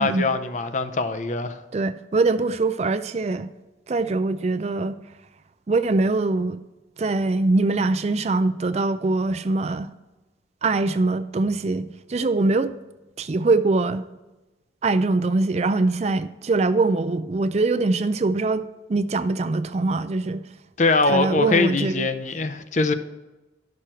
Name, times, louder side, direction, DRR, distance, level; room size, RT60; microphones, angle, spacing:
voice 1, 0.0-1.6 20.8-22.9, left 3 dB, 40° left, 0.6 m, -22 dB
voice 2, 1.7-3.5 3.9-5.0 5.7-6.6 7.0-9.9 10.6-12.7 13.2-14.0 14.8-18.6 18.9-20.4 21.1-22.1, right 3 dB, 35° right, 0.4 m, -23 dB
11.5 x 6.3 x 4.4 m
head